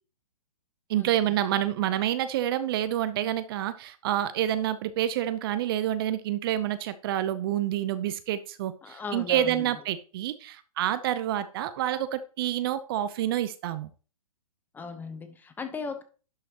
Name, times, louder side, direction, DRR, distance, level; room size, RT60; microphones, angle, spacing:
voice 1, 0.9-13.9, right 12 dB, 40° right, 0.6 m, -28 dB
voice 2, 8.8-9.7 14.7-16.0, left 5 dB, 10° left, 0.8 m, -37 dB
11.0 x 5.8 x 2.9 m
hypercardioid pair, 130°, 19 cm